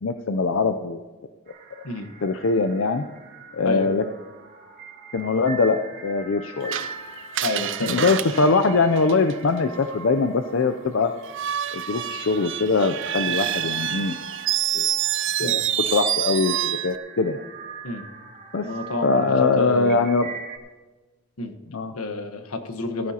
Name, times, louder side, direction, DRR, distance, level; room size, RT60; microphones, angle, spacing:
voice 1, 0.0-1.0 2.2-3.0 3.5-4.0 5.1-6.7 7.9-11.1 11.7-14.2 14.7-14.9 15.4-17.4 18.5-18.7 19.0-20.3 21.7-21.9, left 4 dB, 60° left, 8 dB, 0.5 m, -22 dB
sound 1, 1.5-20.6, right 4 dB, 45° right, 1.8 m, -42 dB
Screech, 6.7-9.6 11.2-17.0, right 11 dB, 60° right, 0.5 m, -27 dB
voice 2, 7.4-8.1 13.4-13.5 15.4-15.6 17.8-18.0 18.6-20.0 21.4-21.5 21.9-23.1, left 2 dB, 85° left, 7 dB, 1.2 m, -29 dB
16.0 x 14.0 x 2.9 m, 1.2 s
head